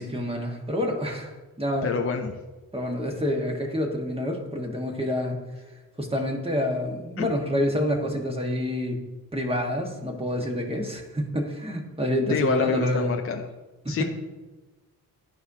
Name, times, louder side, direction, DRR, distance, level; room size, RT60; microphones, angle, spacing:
voice 1, 0.0-1.9 2.7-5.4 6.0-9.0 9.3-13.1 13.8-14.0, left 1 dB, 15° right, 1 dB, 1.5 m, -27 dB
voice 2, 1.8-2.4 7.2-7.3 12.3-13.4 13.9-14.0, left 5 dB, 35° left, 4 dB, 0.6 m, -27 dB
10.5 x 4.6 x 2.8 m, 1.2 s
supercardioid pair, 55°, 37 cm